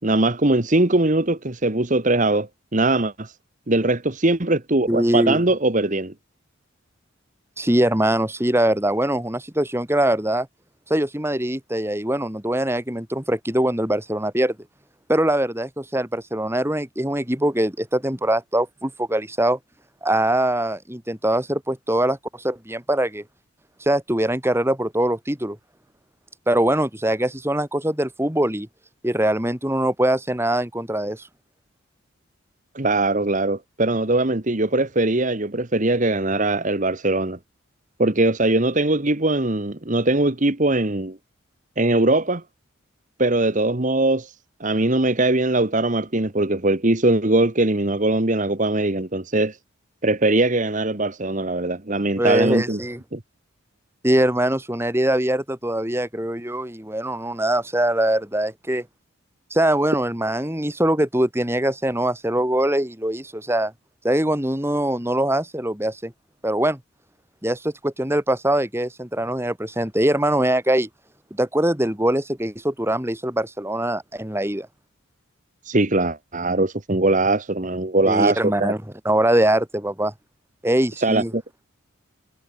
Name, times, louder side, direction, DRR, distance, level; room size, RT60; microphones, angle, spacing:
voice 1, 0.0-3.3 3.7-6.1 32.7-37.4 38.0-41.2 41.8-42.4 43.2-44.3 44.6-49.6 50.0-52.8 53.1-53.2 75.6-78.7 81.0-81.4, right 2 dB, 35° right, 1.4 m, -21 dB
voice 2, 4.9-5.4 7.6-10.5 10.9-14.6 15.1-19.6 20.0-23.2 23.8-25.6 26.5-28.7 29.0-31.3 52.2-53.0 54.0-58.9 59.5-63.7 64.0-66.1 66.4-66.8 67.4-70.9 71.3-74.7 78.1-78.8 79.0-80.1 80.6-81.3, right 1 dB, 10° right, 2.7 m, -22 dB
head